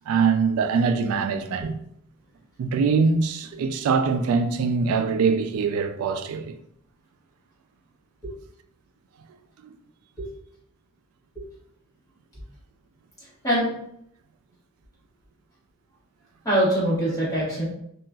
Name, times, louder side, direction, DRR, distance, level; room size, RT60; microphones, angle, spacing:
voice 1, 0.1-1.8 2.6-6.6 9.6-9.7, right 5 dB, 75° right, 0.3 m, -23 dB
voice 2, 16.4-17.7, right 1 dB, 15° left, 1.3 m, -23 dB
2.9 x 2.4 x 2.3 m
head